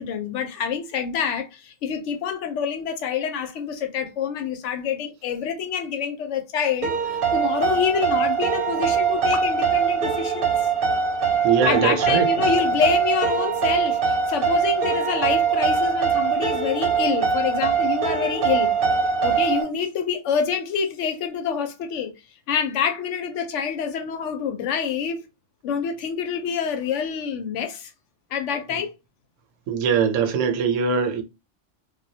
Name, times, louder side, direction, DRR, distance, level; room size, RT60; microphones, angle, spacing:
voice 1, 0.0-10.5 11.6-18.7 19.2-22.1 22.5-25.2 25.6-27.9 28.3-28.9, left 7 dB, 80° left, 0.9 m, -26 dB
sound 1, 6.8-19.6, right 6 dB, 60° right, 0.7 m, -22 dB
voice 2, 11.4-12.2 28.7-28.8 29.7-31.2, right 6 dB, 85° right, 0.9 m, -21 dB
2.2 x 2.1 x 2.6 m
omnidirectional pair, 1.3 m